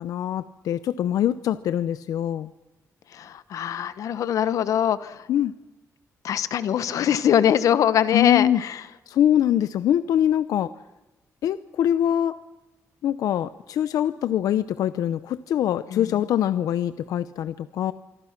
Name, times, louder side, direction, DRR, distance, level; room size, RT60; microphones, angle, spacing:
voice 1, 0.0-2.5 5.3-5.5 8.1-8.6 9.1-10.7 11.4-12.4 13.0-17.9, left 11 dB, 90° left, 14 dB, 0.7 m, -23 dB
voice 2, 3.1-5.3 6.2-8.9 15.9-16.2, left 9 dB, 70° left, 14 dB, 1.2 m, -23 dB
26.0 x 24.0 x 6.0 m, 1.0 s
wide cardioid pair, 165°, 6 cm